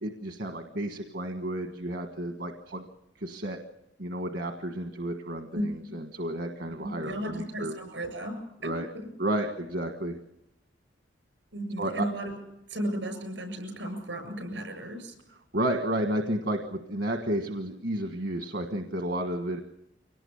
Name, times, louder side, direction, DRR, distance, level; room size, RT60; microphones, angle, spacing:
voice 1, 0.0-2.8 3.2-3.6 4.0-7.8 8.6-8.9 9.2-10.2 11.8-12.1 15.5-19.6, right 1 dB, 70° right, 5 dB, 1.5 m, -32 dB
voice 2, 6.8-8.4 8.6-8.7 11.5-12.3 12.7-15.1, right 1 dB, 85° right, 8 dB, 7.5 m, -34 dB
24.5 x 18.5 x 7.1 m, 0.82 s
head